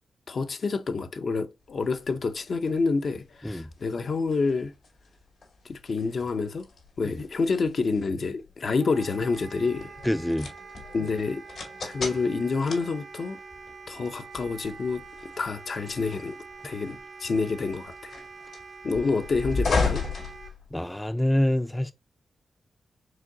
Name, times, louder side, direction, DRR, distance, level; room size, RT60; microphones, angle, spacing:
voice 1, 0.3-4.7 5.6-6.7 7.0-9.9 10.9-11.4 11.8-13.4 13.9-16.4 16.6-18.1 18.8-20.0, left 4 dB, 60° left, 0.6 m, -28 dB
sound 1, 1.8-21.1, left 4 dB, 75° left, 2.2 m, -36 dB
Wind instrument woodwind instrument, 8.8-20.5, right 4 dB, 50° right, 0.6 m, -45 dB
voice 2, 10.0-10.5 20.7-21.9, left 1 dB, 10° left, 0.4 m, -26 dB
4.9 x 3.7 x 2.7 m
cardioid pair, 75°, 0 cm